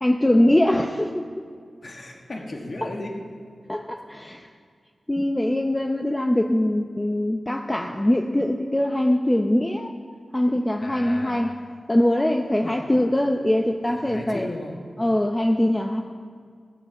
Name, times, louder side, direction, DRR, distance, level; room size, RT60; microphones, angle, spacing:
voice 1, 0.0-1.2 3.7-4.5 5.1-9.9 10.3-11.5 11.9-14.5 15.0-16.0, left 1 dB, 15° left, 3 dB, 0.7 m, -22 dB
voice 2, 1.8-3.2 10.8-11.4 12.6-12.8 13.9-14.9, left 2 dB, 55° left, 0 dB, 1.9 m, -35 dB
17.0 x 8.2 x 5.9 m, 2.1 s
cardioid pair, 60°, 0 cm